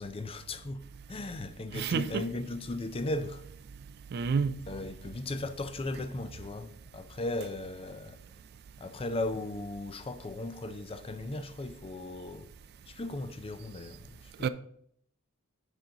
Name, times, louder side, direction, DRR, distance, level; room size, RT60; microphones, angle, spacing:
voice 1, 0.0-3.5 4.7-8.2 8.8-12.5 12.9-14.5, left 2 dB, 25° left, 0.4 m, -37 dB
voice 2, 1.7-2.2 4.1-4.6 14.4-14.5, right 5 dB, 45° right, 0.3 m, -29 dB
7.1 x 5.2 x 3.9 m
head